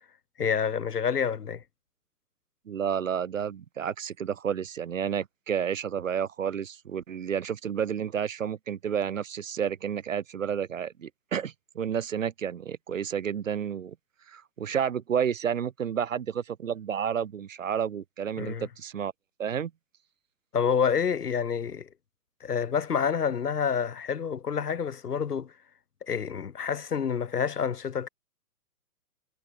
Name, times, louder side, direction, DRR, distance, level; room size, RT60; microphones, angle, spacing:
voice 1, 0.4-1.6 18.4-18.7 20.5-21.9 22.4-25.5 26.1-28.1, left 7 dB, 75° left, 4.5 m, -28 dB
voice 2, 2.7-13.9 14.3-19.1 19.4-19.7, right 8 dB, 55° right, 1.4 m, -31 dB
hypercardioid pair, 180°, 47 cm